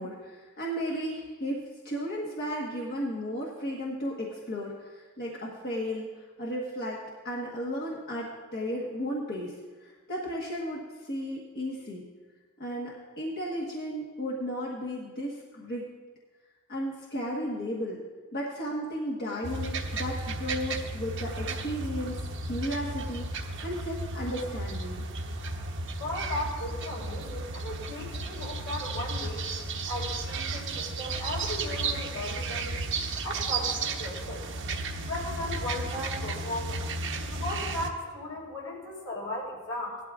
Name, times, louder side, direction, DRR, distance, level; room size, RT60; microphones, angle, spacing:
voice 1, 0.0-12.1 12.6-15.9 16.7-18.0 18.3-25.0, equal, 50° left, -4 dB, 1.4 m, -34 dB
sound 1, 19.4-37.9, right 3 dB, 60° right, 1.0 m, -34 dB
voice 2, 26.0-29.4 29.9-32.8 33.2-34.4 35.1-36.8 37.3-40.0, left 1 dB, 80° left, -3 dB, 4.4 m, -36 dB
18.0 x 12.0 x 2.5 m, 1.4 s
head